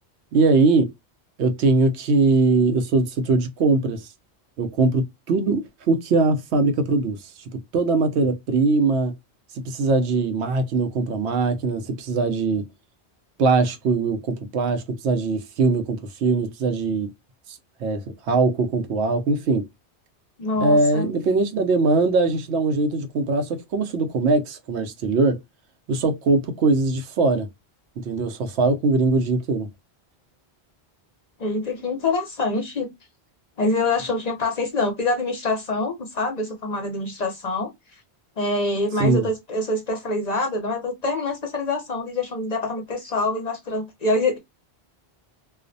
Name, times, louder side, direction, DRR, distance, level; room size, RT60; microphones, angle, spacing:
voice 1, 0.3-0.9 1.4-4.0 4.6-9.1 9.6-12.6 13.4-17.1 17.5-19.7 20.6-25.4 25.9-27.5 28.0-29.7 39.0-39.3, right 3 dB, 85° right, 0.9 m, -21 dB
voice 2, 20.4-21.1 31.4-32.9 33.6-37.7 38.4-44.4, left 2 dB, 45° left, 0.6 m, -25 dB
2.3 x 2.0 x 2.5 m
omnidirectional pair, 1.1 m